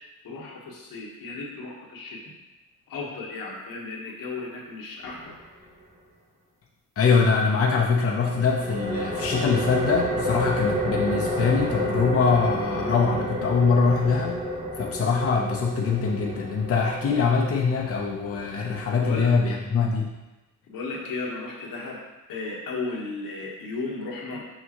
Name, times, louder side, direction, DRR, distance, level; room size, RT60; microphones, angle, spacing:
voice 1, 0.2-2.2 2.9-5.5 19.0-19.3 20.7-22.0 22.3-24.4, left 3 dB, 80° left, -3 dB, 1.5 m, -34 dB
voice 2, 7.0-14.4 14.8-20.1, left 5 dB, 45° left, -3 dB, 0.9 m, -23 dB
sound 1, 8.1-19.5, equal, 20° right, 1.1 m, -30 dB
6.5 x 5.5 x 3.0 m, 1.0 s
cardioid pair, 125°, 33 cm